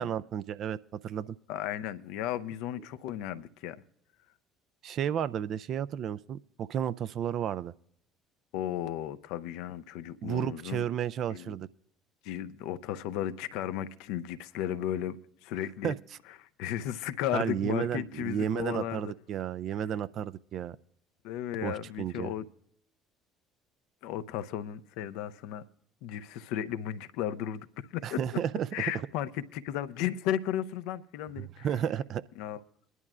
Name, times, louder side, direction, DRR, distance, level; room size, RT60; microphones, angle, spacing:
voice 1, 0.0-1.4 4.8-7.7 10.2-11.7 15.8-15.9 17.3-20.8 21.6-22.3 28.0-28.7 31.4-32.2, right 9 dB, 55° right, 0.4 m, -32 dB
voice 2, 1.5-3.8 8.5-10.9 11.3-11.6 12.2-15.9 16.6-19.1 21.2-22.4 24.0-25.7 26.0-28.2 28.7-31.7 32.4-32.6, left 11 dB, 70° left, 0.5 m, -35 dB
22.5 x 11.0 x 2.4 m
hypercardioid pair, 60°, 0 cm